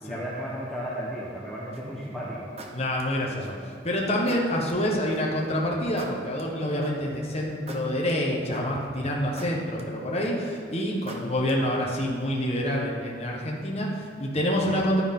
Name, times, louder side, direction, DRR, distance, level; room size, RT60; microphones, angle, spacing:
voice 1, 0.0-2.5 14.6-14.8, equal, 5° left, -7 dB, 1.1 m, -34 dB
sound 1, 1.7-2.0 2.6-3.7 4.3-5.2 6.0-7.1 7.7-8.8 9.4-10.5 11.1-12.2, right 2 dB, 35° right, 0.8 m, -43 dB
voice 2, 2.7-15.0, equal, 35° left, -3 dB, 1.2 m, -27 dB
11.0 x 9.8 x 3.8 m, 2.1 s
head